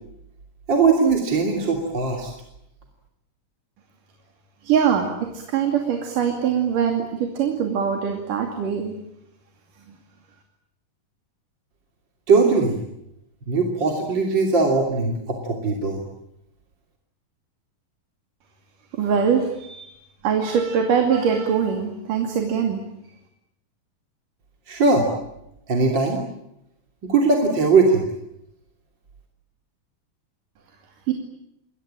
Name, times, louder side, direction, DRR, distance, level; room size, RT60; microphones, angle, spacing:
voice 1, 0.7-2.3 12.3-12.8 13.5-16.0 24.7-25.1 25.7-26.2 27.0-28.1, right 4 dB, 35° right, 1 dB, 3.4 m, -20 dB
voice 2, 4.6-8.9 9.9-10.0 18.9-19.9 20.2-22.8 31.1-31.2, right 7 dB, 70° right, 3 dB, 4.1 m, -22 dB
29.5 x 22.0 x 8.8 m, 0.82 s
omnidirectional pair, 4.0 m